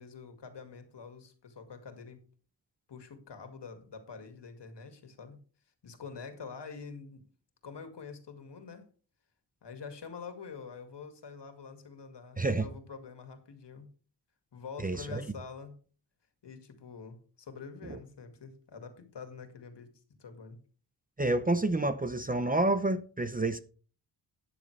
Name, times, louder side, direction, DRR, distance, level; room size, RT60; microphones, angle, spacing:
voice 1, 0.0-2.2 2.9-5.4 5.8-7.2 7.6-8.9 9.6-13.9 14.5-15.7 16.4-19.9 20.2-20.6, left 5 dB, 70° left, 2.2 m, -46 dB
voice 2, 12.4-12.7 14.8-15.2 17.8-18.0 21.2-23.6, right 2 dB, 20° right, 0.6 m, -29 dB
12.5 x 9.7 x 3.3 m
wide cardioid pair, 155°, 44 cm